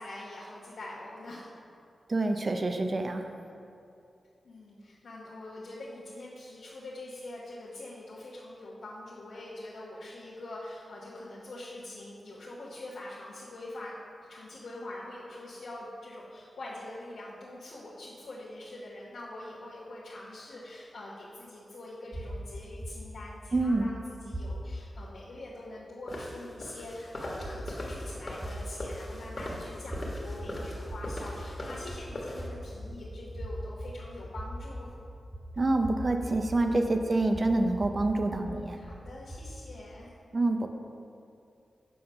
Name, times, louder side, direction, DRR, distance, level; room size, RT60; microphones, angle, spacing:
voice 1, 0.0-1.5 4.4-14.0 14.3-34.9 38.3-40.1, left 1 dB, 90° left, -9 dB, 1.1 m, -44 dB
voice 2, 2.1-3.3 23.5-23.9 35.6-38.8 40.3-40.7, right 2 dB, 45° right, 5 dB, 0.6 m, -27 dB
sound 1, 22.1-24.9 27.3-39.7, equal, 15° right, 1.6 m, -41 dB
sound 2, 26.1-32.5, left 1 dB, 45° left, 1.4 m, -40 dB
7.6 x 3.9 x 5.6 m, 2.6 s
cardioid pair, 70°, 0 cm